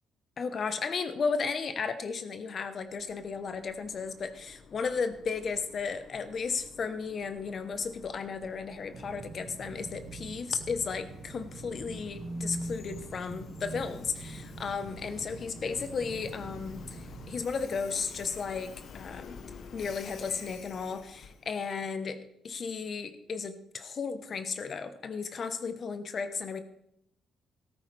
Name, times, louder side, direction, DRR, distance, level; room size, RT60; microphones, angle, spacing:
voice 1, 0.4-16.9 17.3-19.4 19.7-26.6, left 5 dB, 50° left, 10 dB, 1.0 m, -34 dB
Train, 2.7-21.5, left 5 dB, 65° left, 1.2 m, -50 dB
sound 1, 8.9-17.4, right 3 dB, 40° right, 1.2 m, -43 dB
14.0 x 13.0 x 3.4 m, 0.77 s
cardioid pair, 90°, 0 cm